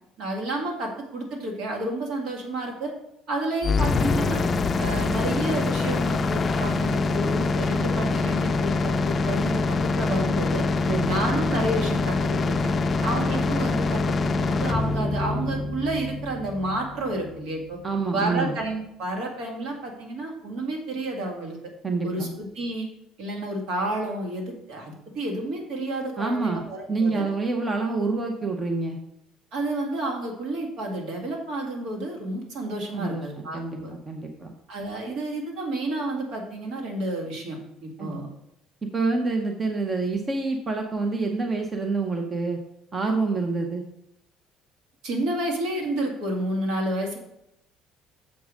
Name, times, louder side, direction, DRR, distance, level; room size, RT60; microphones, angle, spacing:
voice 1, 0.2-2.9 3.3-4.5 4.8-10.6 11.0-12.7 13.0-17.8 18.1-21.6 22.0-22.9 23.2-27.3 29.5-33.9 34.7-38.3 45.0-47.2, right 1 dB, 70° right, 2 dB, 2.1 m, -30 dB
sound 1, 3.6-17.6, left 3 dB, 25° left, 0.5 m, -25 dB
voice 2, 10.9-11.2 17.8-18.6 21.8-22.3 26.2-29.0 32.9-34.5 38.0-38.2 38.8-42.6 42.9-43.8, right 3 dB, 25° right, 3 dB, 0.8 m, -27 dB
7.3 x 4.6 x 6.3 m, 0.81 s
cardioid pair, 145°, 0 cm